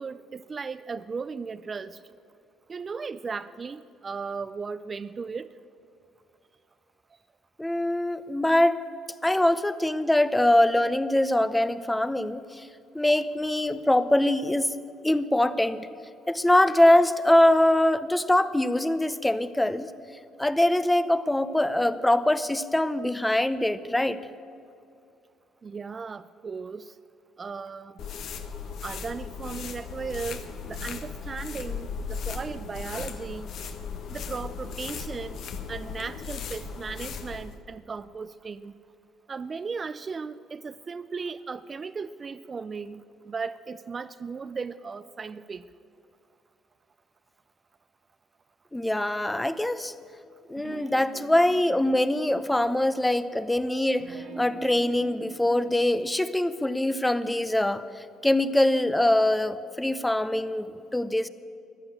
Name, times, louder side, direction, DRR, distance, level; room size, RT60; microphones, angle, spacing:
voice 1, 0.0-2.0 2.7-5.5 25.6-26.9 27.4-28.0 28.8-33.5 34.1-35.4 35.7-38.7 39.3-45.7, right 5 dB, 35° right, 13 dB, 0.5 m, -36 dB
voice 2, 7.6-8.8 9.2-12.7 12.9-14.7 15.0-15.9 16.3-19.9 20.4-24.2 48.7-49.9 50.5-61.3, left 1 dB, 10° left, 14 dB, 0.8 m, -23 dB
sound 1, 28.0-37.6, left 6 dB, 65° left, 1.3 m, -37 dB
sound 2, 50.5-52.9 53.9-55.8, right 5 dB, 60° right, 1.7 m, -43 dB
15.0 x 10.5 x 8.7 m, 2.5 s
supercardioid pair, 75°, 0 cm